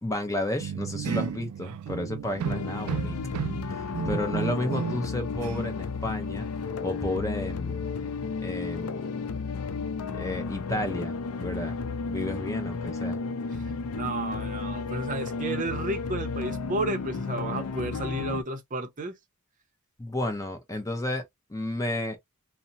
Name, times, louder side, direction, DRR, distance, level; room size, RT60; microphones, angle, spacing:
voice 1, 0.0-3.2 3.7-6.5 6.8-7.8 8.4-9.2 10.2-11.8 12.1-13.2 20.0-21.2 21.5-22.2, left 1 dB, 15° left, 0.7 m, -32 dB
sound 1, 0.6-5.2 5.4-5.8, right 8 dB, 80° right, 0.3 m, -33 dB
sound 2, 2.4-18.4, left 4 dB, 80° left, 0.4 m, -33 dB
voice 2, 13.9-19.2, right 2 dB, 35° right, 0.6 m, -32 dB
2.8 x 2.0 x 2.6 m
head